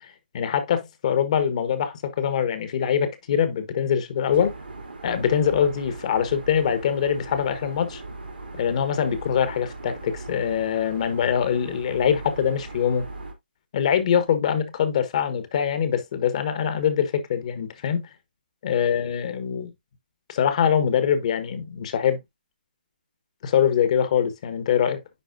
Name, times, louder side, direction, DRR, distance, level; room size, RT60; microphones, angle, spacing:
voice 1, 0.0-4.5 5.0-8.0 8.5-13.1 13.7-18.1 18.6-19.7 20.3-22.2 23.4-25.0, left 8 dB, 45° left, 1.4 m, -23 dB
sound 1, 4.3-13.3, right 2 dB, 80° right, 2.8 m, -39 dB
10.0 x 4.2 x 2.6 m
figure-of-eight pair, 145°, 5 cm